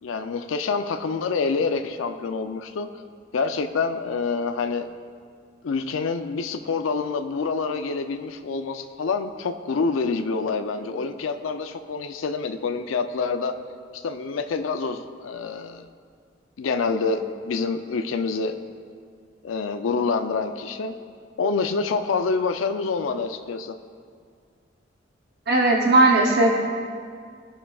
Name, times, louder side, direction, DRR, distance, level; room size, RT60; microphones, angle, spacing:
voice 1, 0.0-2.9 3.3-4.9 5.6-13.5 13.9-15.8 16.6-18.5 19.4-20.9 21.4-23.8, left 4 dB, 90° left, 8 dB, 0.4 m, -27 dB
voice 2, 25.5-26.5, right 2 dB, 55° right, 0 dB, 0.7 m, -17 dB
15.5 x 5.5 x 2.3 m, 2.1 s
head